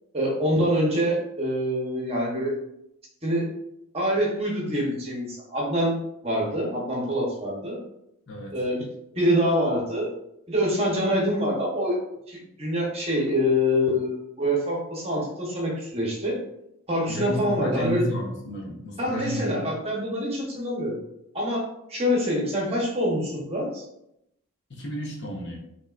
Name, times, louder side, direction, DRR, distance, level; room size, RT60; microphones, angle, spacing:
voice 1, 0.1-2.5 3.2-3.5 3.9-6.0 6.2-7.8 8.5-8.9 9.2-10.1 10.5-12.0 12.3-16.4 16.9-18.0 19.0-21.0 21.3-23.8, equal, 25° right, -2 dB, 1.0 m, -25 dB
voice 2, 8.3-8.6 17.1-19.6 23.3-23.5 24.7-25.6, equal, 50° left, -1 dB, 1.0 m, -32 dB
5.3 x 2.9 x 2.5 m, 0.80 s
head